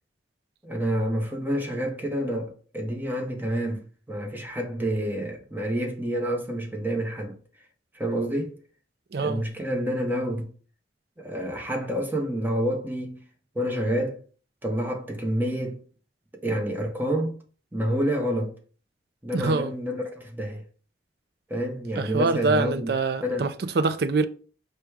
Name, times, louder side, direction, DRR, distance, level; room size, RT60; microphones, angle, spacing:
voice 1, 0.6-3.8 4.1-7.4 7.9-8.6 9.2-10.5 11.2-13.2 13.5-14.2 14.6-15.8 16.4-17.4 17.7-18.5 19.2-20.6 21.5-22.9 23.2-23.5, equal, 10° right, 0.8 m, -28 dB
voice 2, 9.1-9.4 19.3-19.7 22.0-24.3, right 3 dB, 60° right, 0.4 m, -25 dB
4.9 x 2.2 x 4.6 m
head